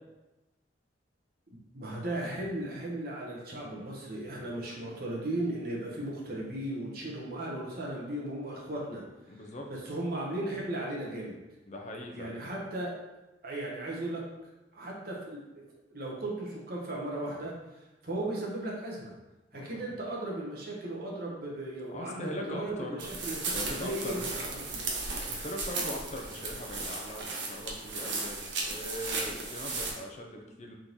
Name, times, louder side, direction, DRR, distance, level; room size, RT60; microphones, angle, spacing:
voice 1, 1.5-9.0 9.7-11.4 12.1-12.9 13.4-14.2 14.7-15.2 15.5-15.6 15.9-19.1 19.5-25.1, right 1 dB, 55° right, -3 dB, 1.0 m, -36 dB
voice 2, 9.3-9.7 11.7-12.4 19.5-19.9 21.9-23.1 23.5-24.2 25.3-30.7, left 1 dB, 40° left, 2 dB, 0.6 m, -41 dB
sound 1, 23.0-29.9, right 3 dB, 80° right, 0.8 m, -35 dB
3.7 x 3.0 x 3.9 m, 1.0 s
head